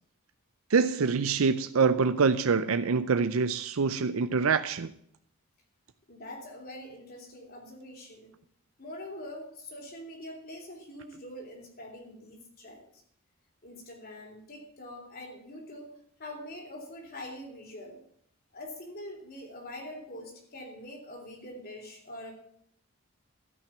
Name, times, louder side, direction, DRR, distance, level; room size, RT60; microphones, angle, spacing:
voice 1, 0.7-4.9, right 5 dB, 70° right, 10 dB, 0.6 m, -25 dB
voice 2, 6.1-8.3 8.8-13.0 13.6-15.9 16.2-18.0 18.5-22.3, left 1 dB, 45° left, 1 dB, 3.5 m, -44 dB
13.5 x 6.0 x 9.4 m, 0.66 s
head